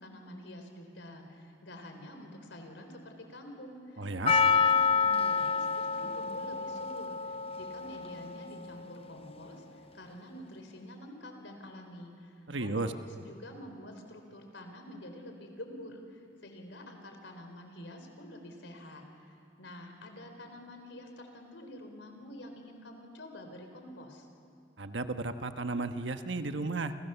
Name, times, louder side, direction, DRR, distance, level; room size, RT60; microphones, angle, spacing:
voice 1, 0.0-24.3, left 1 dB, 80° left, 5 dB, 4.2 m, -48 dB
voice 2, 4.0-4.3 12.5-12.9 24.8-26.9, right 3 dB, 75° right, 8 dB, 1.2 m, -34 dB
Percussion, 4.3-9.2, left 5 dB, 30° left, 0.7 m, -29 dB
29.5 x 28.5 x 7.1 m, 2.4 s
head